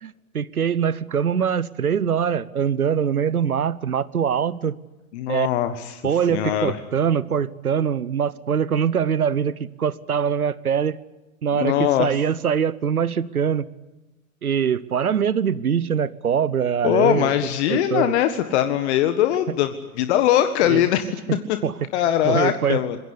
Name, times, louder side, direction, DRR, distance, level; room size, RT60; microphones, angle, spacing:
voice 1, 0.0-4.8 5.3-5.5 6.0-11.0 11.4-13.7 14.4-17.3 17.7-18.1 19.5-19.6 20.6-20.9 21.3-21.8 22.2-22.8, right 7 dB, 80° right, 20 dB, 1.1 m, -23 dB
voice 2, 5.1-5.9 6.3-6.7 11.5-12.1 16.8-21.1 21.9-23.0, left 11 dB, 50° left, 9 dB, 1.6 m, -21 dB
27.0 x 22.5 x 8.2 m, 1.1 s
figure-of-eight pair, 100°, 43 cm